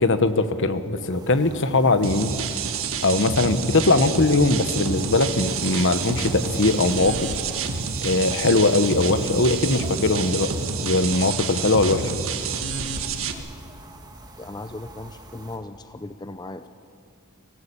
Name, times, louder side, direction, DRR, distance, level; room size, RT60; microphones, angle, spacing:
voice 1, 0.0-2.4 3.0-7.3 8.0-10.5 10.8-12.1, left 2 dB, 55° left, 11 dB, 1.2 m, -20 dB
sound 1, 1.1-15.6, right 2 dB, 20° right, 2.0 m, -46 dB
sound 2, 2.0-13.3, right 5 dB, 65° right, 1.8 m, -28 dB
voice 2, 14.4-16.7, left 2 dB, 20° left, 10 dB, 0.5 m, -37 dB
23.5 x 17.5 x 8.7 m, 2.4 s
head